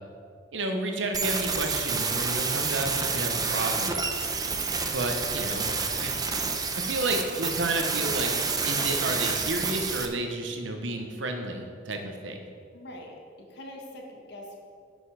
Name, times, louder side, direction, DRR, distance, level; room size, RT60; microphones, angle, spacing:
voice 1, 0.5-4.0 4.9-5.7 6.0-6.2 6.7-8.3 8.6-12.4, right 2 dB, 80° right, 4 dB, 1.1 m, -31 dB
sound 1, 1.1-10.1, right 4 dB, 20° right, 0.7 m, -29 dB
voice 2, 12.7-14.6, left 1 dB, 65° left, 0 dB, 1.6 m, -43 dB
11.5 x 5.4 x 4.9 m, 2.2 s
head